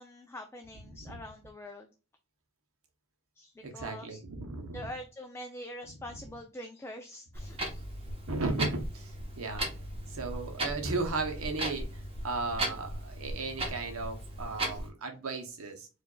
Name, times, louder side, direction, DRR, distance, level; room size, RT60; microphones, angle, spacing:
voice 1, 0.0-1.9 3.4-4.2 4.7-7.8 14.7-14.8, left 1 dB, 10° left, 4 dB, 0.4 m, -44 dB
voice 2, 3.6-4.9 8.3-9.7 10.1-15.9, right 3 dB, 75° right, 4 dB, 0.9 m, -35 dB
Clock, 7.3-14.9, right 1 dB, 25° right, 1.1 m, -37 dB
4.8 x 2.5 x 2.3 m, 0.32 s
head